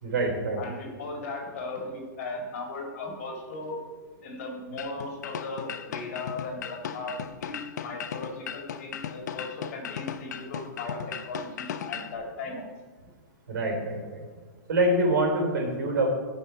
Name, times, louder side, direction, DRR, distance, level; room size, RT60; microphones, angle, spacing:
voice 1, 0.0-0.6 13.5-14.2 14.7-16.1, right 1 dB, 70° right, 1 dB, 3.5 m, -25 dB
voice 2, 0.6-3.8 4.2-12.6 13.0-13.1, left 2 dB, 40° left, 1 dB, 2.2 m, -37 dB
sound 1, 4.8-12.1, left 8 dB, 55° left, 0.6 m, -37 dB
14.5 x 5.5 x 4.4 m, 1.4 s
hypercardioid pair, 175°, 11 cm